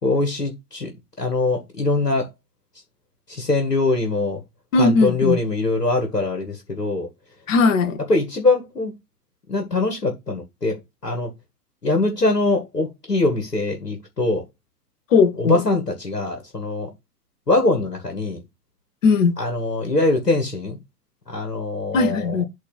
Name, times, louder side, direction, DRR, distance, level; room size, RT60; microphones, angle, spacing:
voice 1, 0.0-0.9 1.2-2.3 3.3-4.4 4.8-7.1 8.1-8.9 9.5-10.8 11.0-11.3 11.8-14.4 15.4-16.9 17.5-18.4 19.4-20.8 21.3-22.2, left 2 dB, 80° left, 2.1 m, -22 dB
voice 2, 4.7-5.4 7.5-8.0 15.1-15.6 19.0-19.4 21.9-22.4, left 4 dB, 55° left, 1.5 m, -18 dB
8.3 x 3.0 x 6.3 m
figure-of-eight pair, 105°, 47 cm